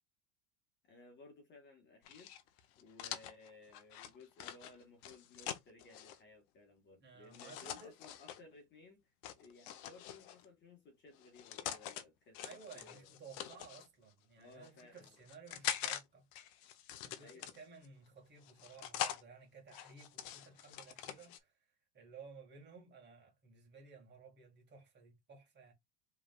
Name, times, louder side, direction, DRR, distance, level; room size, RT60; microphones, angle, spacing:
voice 1, 0.8-2.3 2.8-9.1 9.4-13.1 14.4-15.2 17.2-17.5, left 3 dB, 30° left, 1.6 m, -59 dB
sound 1, 2.0-6.2 7.3-8.4 9.2-10.5 11.2-12.0 12.3-13.9 14.5-16.0 16.3-17.9 18.4-19.2 19.7-21.4, left 11 dB, 60° left, 0.9 m, -44 dB
voice 2, 7.0-7.9 12.4-16.3 17.0-21.5 21.9-25.7, right 5 dB, 30° right, 2.1 m, -56 dB
5.0 x 3.5 x 2.4 m
supercardioid pair, 130°, 37 cm